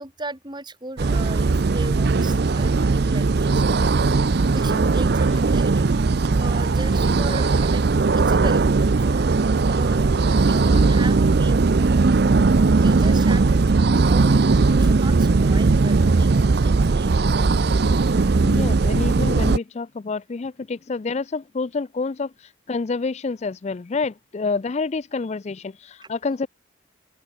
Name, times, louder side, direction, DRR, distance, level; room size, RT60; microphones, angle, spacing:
voice 1, 0.0-3.6 4.4-5.9 6.4-7.9 8.1-10.1 10.5-17.1 26.0-26.1, right 2 dB, 25° right, 5.4 m, -37 dB
sound 1, 1.0-19.6, right 3 dB, 55° right, 0.5 m, -18 dB
voice 2, 18.4-26.5, left 4 dB, 35° left, 0.4 m, -28 dB
open air
head